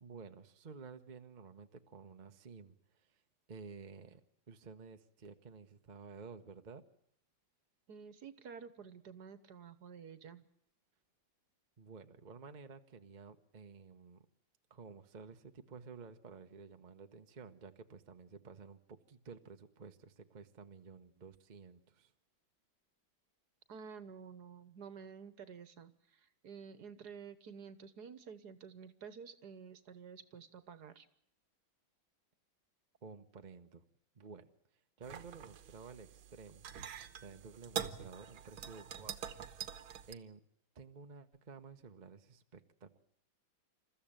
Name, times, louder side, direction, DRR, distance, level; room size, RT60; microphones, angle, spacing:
voice 1, 0.0-3.1 3.5-4.2 4.5-6.8 11.8-14.3 14.7-22.1 33.0-33.8 34.1-34.5 35.0-36.7 37.2-39.3 39.6-39.7 40.1-40.4 40.7-43.0, right 5 dB, 35° right, 7 dB, 0.8 m, -53 dB
voice 2, 7.9-10.4 23.7-31.1, right 6 dB, 60° right, 13 dB, 1.6 m, -51 dB
sound 1, 35.0-40.1, right 9 dB, 90° right, 1.9 m, -45 dB
28.0 x 14.5 x 8.9 m, 0.73 s
omnidirectional pair, 2.1 m